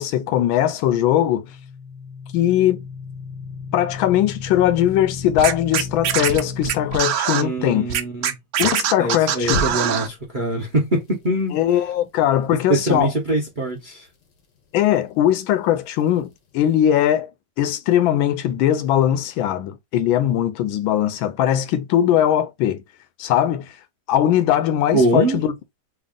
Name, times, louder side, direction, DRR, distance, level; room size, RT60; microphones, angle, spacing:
voice 1, 0.0-1.4 2.3-2.9 3.7-7.9 8.6-9.8 11.5-13.1 14.7-17.3 17.6-22.8 23.2-23.7 24.1-25.5, left 11 dB, 85° left, 1.4 m, -20 dB
sound 1, 1.2-6.9 9.5-10.2, left 4 dB, 55° left, 0.9 m, -33 dB
Scratching (performance technique), 5.4-7.4 7.9-10.1, right 9 dB, 85° right, 0.8 m, -22 dB
voice 2, 7.4-8.4 9.0-11.5 12.7-14.1 24.9-25.4, right 1 dB, 45° right, 0.6 m, -23 dB
3.5 x 2.3 x 3.6 m
omnidirectional pair, 2.2 m